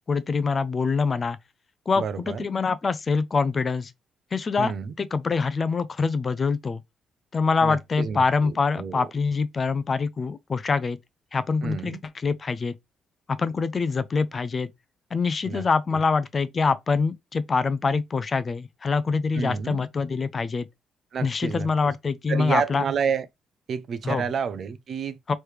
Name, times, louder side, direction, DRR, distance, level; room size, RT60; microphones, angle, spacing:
voice 1, 0.1-1.4 1.9-3.9 4.3-6.8 7.3-11.0 11.3-12.0 12.2-12.7 13.3-14.7 15.1-20.7 21.2-22.8 24.0-24.2 25.3-25.4, left 4 dB, 35° left, 0.5 m, -25 dB
voice 2, 2.0-2.4 4.6-4.9 7.6-9.1 11.6-12.0 15.4-15.6 15.9-16.0 19.3-19.8 21.1-21.9 22.3-23.3 23.7-25.3, right 6 dB, 55° right, 0.6 m, -30 dB
3.2 x 3.2 x 4.6 m
cardioid pair, 90°, 0 cm